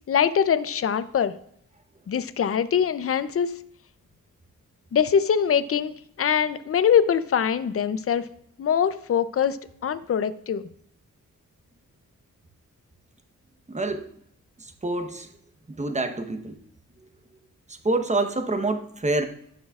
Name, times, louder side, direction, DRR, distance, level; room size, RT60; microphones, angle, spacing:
voice 1, 0.1-1.3 2.1-3.6 4.9-8.3 8.6-9.6 9.8-10.6, left 8 dB, 45° left, 13 dB, 0.5 m, -23 dB
voice 2, 13.7-14.0 14.8-15.3 15.8-16.6 17.8-19.2, right 2 dB, 20° right, 7 dB, 1.0 m, -26 dB
18.0 x 6.4 x 2.4 m, 0.71 s
wide cardioid pair, 135°, 32 cm